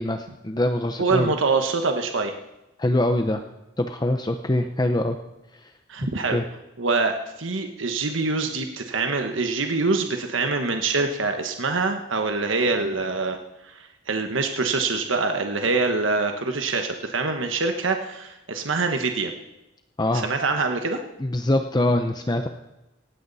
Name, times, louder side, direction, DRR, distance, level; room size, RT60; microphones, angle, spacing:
voice 1, 0.0-1.3 2.8-3.4 3.8-5.2 6.3-6.4 20.0-20.3 21.2-22.5, left 1 dB, 20° left, 6 dB, 0.7 m, -23 dB
voice 2, 1.0-2.4 5.9-6.4 6.8-13.4 13.6-19.3 20.1-21.0, right 3 dB, 90° right, 5 dB, 1.3 m, -25 dB
18.5 x 15.5 x 4.2 m, 0.95 s
head